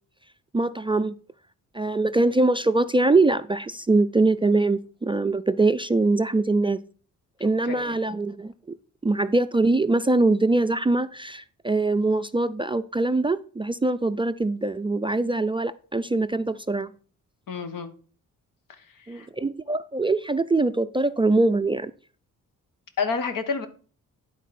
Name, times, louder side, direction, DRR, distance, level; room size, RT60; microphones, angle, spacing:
voice 1, 0.5-1.2 1.7-6.8 7.4-8.5 9.0-16.9 19.1-21.9, right 2 dB, 15° right, 0.3 m, -23 dB
voice 2, 7.6-7.9 17.5-17.9 19.1-19.3 23.0-23.7, left 5 dB, 75° left, 1.4 m, -29 dB
11.5 x 4.0 x 5.9 m
cardioid pair, 90°, 33 cm